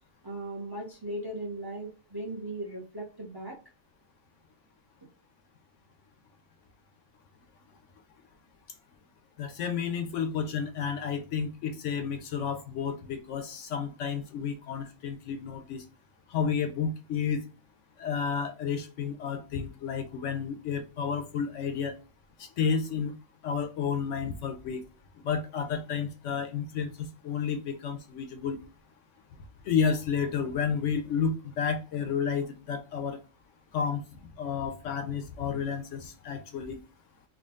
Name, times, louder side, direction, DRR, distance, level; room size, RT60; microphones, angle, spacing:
voice 1, 0.2-3.5, right 1 dB, 20° right, 0 dB, 0.7 m, -37 dB
voice 2, 9.4-15.8 16.3-17.4 18.0-21.9 22.4-23.1 23.4-24.8 25.2-28.6 29.6-33.2 33.7-34.0 34.4-36.8, left 6 dB, 70° left, 6 dB, 0.8 m, -31 dB
3.7 x 2.3 x 3.5 m, 0.35 s
omnidirectional pair, 1.4 m